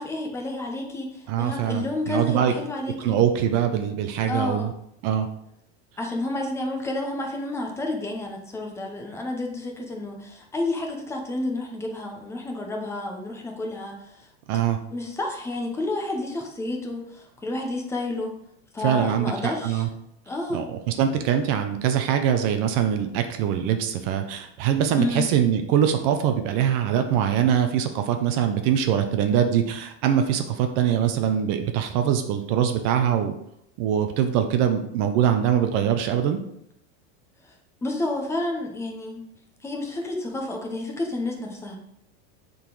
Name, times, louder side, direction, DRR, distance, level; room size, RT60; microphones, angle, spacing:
voice 1, 0.0-3.2 4.2-4.7 6.0-14.3 14.9-18.3 18.7-19.9 20.3-20.6 25.0-25.3 37.4-37.5 37.8-39.2 39.6-41.8, left 2 dB, 5° left, 1 dB, 0.7 m, -30 dB
voice 2, 1.3-2.5 3.0-4.7 5.0-5.3 14.5-14.8 18.8-19.9 20.5-33.4 33.8-36.4, right 9 dB, 35° right, 7 dB, 0.5 m, -23 dB
7.1 x 3.9 x 3.8 m, 0.75 s
supercardioid pair, 160°, 36 cm